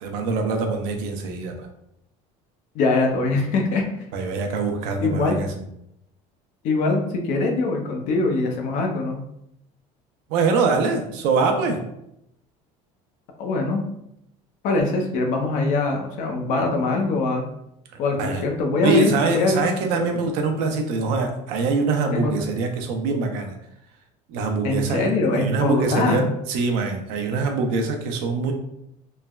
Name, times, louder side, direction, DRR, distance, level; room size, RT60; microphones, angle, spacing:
voice 1, 0.0-1.5 4.1-5.5 10.3-11.8 18.2-18.4 18.8-23.5 24.3-28.5, right 4 dB, 80° right, 4 dB, 0.5 m, -23 dB
voice 2, 2.7-3.9 5.0-5.4 6.6-9.2 13.4-13.8 14.6-17.4 18.0-19.6 19.9-20.1 22.1-22.3 24.6-26.3, left 3 dB, 55° left, 3 dB, 0.5 m, -23 dB
3.1 x 2.1 x 2.3 m, 0.79 s
cardioid pair, 160°, 15 cm